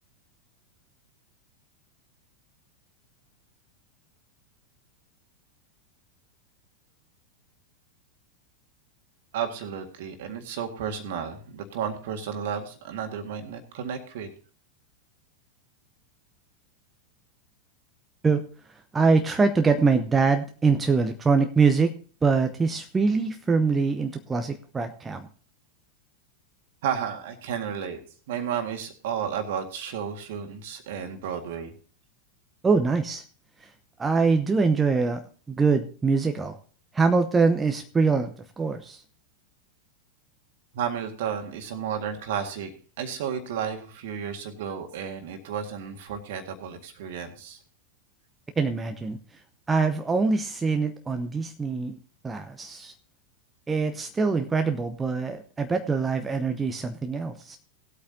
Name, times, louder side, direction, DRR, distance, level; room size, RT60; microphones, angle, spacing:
voice 1, 9.3-14.3 26.8-28.0 28.3-31.7 40.7-42.7 43.0-47.6, right 8 dB, 55° right, 5 dB, 1.9 m, -32 dB
voice 2, 18.9-21.9 22.2-25.3 32.6-33.2 33.6-33.7 34.0-35.2 35.5-36.6 36.9-39.0 48.6-49.2 49.7-52.0 52.2-52.9 53.7-57.6, right 4 dB, 15° right, 6 dB, 0.7 m, -24 dB
18.5 x 8.4 x 2.8 m, 0.41 s
figure-of-eight pair, 90°, 0 cm